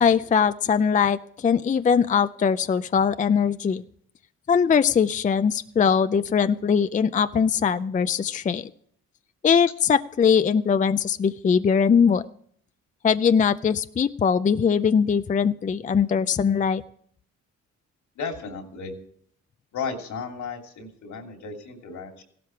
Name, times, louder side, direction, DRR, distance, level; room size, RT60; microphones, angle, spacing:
voice 1, 0.0-3.8 4.5-8.7 9.4-12.3 13.0-16.8, left 6 dB, 25° left, 13 dB, 0.4 m, -21 dB
voice 2, 18.2-18.9 19.7-22.2, left 5 dB, 70° left, 4 dB, 3.0 m, -34 dB
16.0 x 12.5 x 4.6 m, 0.65 s
cardioid pair, 90°, 30 cm